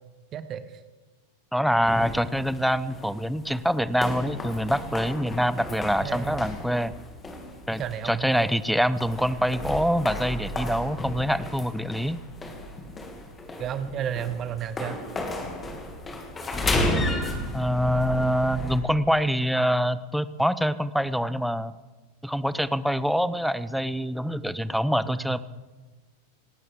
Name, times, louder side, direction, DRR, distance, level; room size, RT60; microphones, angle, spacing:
voice 1, 0.3-0.8 6.0-6.4 7.8-8.5 13.6-15.0 25.2-25.4, right 9 dB, 30° right, 12 dB, 1.1 m, -32 dB
voice 2, 1.5-6.9 7.7-12.2 17.5-21.7 22.2-25.4, equal, ahead, 15 dB, 0.6 m, -25 dB
sound 1, 1.8-18.8, left 1 dB, 15° left, 2.3 m, -33 dB
26.5 x 12.0 x 3.6 m, 1.3 s
figure-of-eight pair, 90°, 0 cm